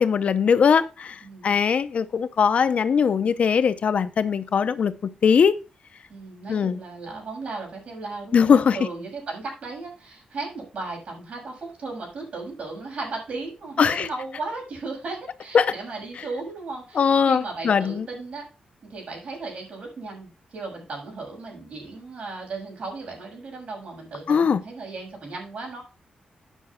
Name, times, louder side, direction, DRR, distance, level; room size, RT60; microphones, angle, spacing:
voice 1, 0.0-5.6 6.5-6.8 8.3-8.8 13.8-14.1 15.5-15.7 16.9-18.1 24.3-24.6, left 6 dB, 55° left, 0.7 m, -20 dB
voice 2, 1.2-1.5 6.1-18.4 18.9-25.8, right 3 dB, 55° right, 6.5 m, -36 dB
10.0 x 5.9 x 5.7 m
wide cardioid pair, 140°, 3 cm